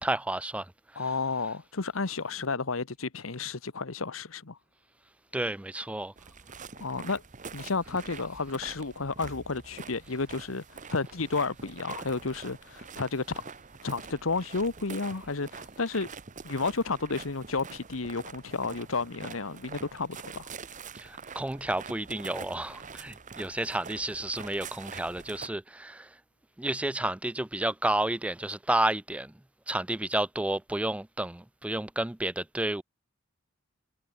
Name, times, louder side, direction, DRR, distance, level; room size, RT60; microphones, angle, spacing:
voice 1, 0.0-0.7 5.3-6.1 21.0-26.1 26.6-29.3 29.7-32.8, right 1 dB, 5° right, 0.4 m, -31 dB
voice 2, 1.0-4.6 6.8-7.2 7.5-13.4 13.8-16.1 16.4-20.5, left 4 dB, 75° left, 1.2 m, -32 dB
sound 1, 6.2-25.5, right 5 dB, 40° right, 1.1 m, -45 dB
head